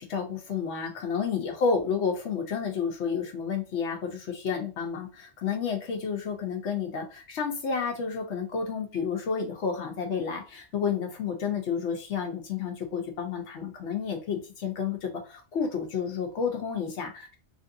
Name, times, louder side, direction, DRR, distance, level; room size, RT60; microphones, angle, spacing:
voice 1, 0.0-17.4, left 6 dB, 80° left, 3 dB, 0.9 m, -30 dB
3.1 x 2.6 x 2.5 m, 0.33 s
omnidirectional pair, 1.2 m